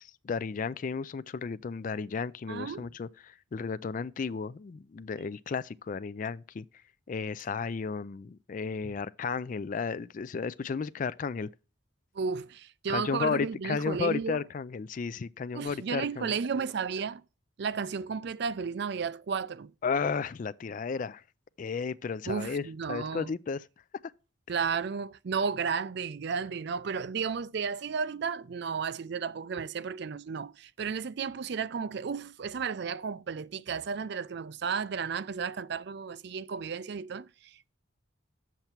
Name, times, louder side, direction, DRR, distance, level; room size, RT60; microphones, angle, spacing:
voice 1, 0.0-6.7 7.1-11.5 12.9-16.3 19.8-21.2 21.6-23.7, left 5 dB, 40° left, 0.3 m, -33 dB
voice 2, 2.5-2.9 12.1-14.4 15.5-17.2 17.6-19.7 22.3-23.3 24.5-37.7, right 5 dB, 55° right, 0.4 m, -33 dB
7.8 x 7.3 x 4.5 m
head